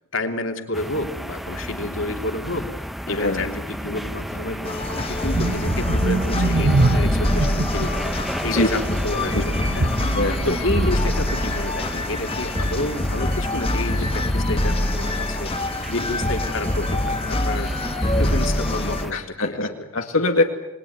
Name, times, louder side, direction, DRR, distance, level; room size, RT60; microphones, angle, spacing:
voice 1, 0.1-2.7 3.0-9.9 10.4-15.5 15.9-17.7 18.2-19.9, left 2 dB, 60° left, 5 dB, 3.0 m, -30 dB
sound 1, 0.7-19.1, equal, ahead, 0.9 m, -32 dB
voice 2, 3.1-3.4 8.5-8.7 9.3-9.4 10.1-10.6 19.1-20.4, left 2 dB, 85° left, 2 dB, 2.3 m, -23 dB
sound 2, 4.6-19.1, left 1 dB, 25° left, 1.5 m, -25 dB
sound 3, 5.3-11.6, right 2 dB, 75° right, 1.2 m, -25 dB
28.5 x 21.0 x 9.6 m, 0.92 s
head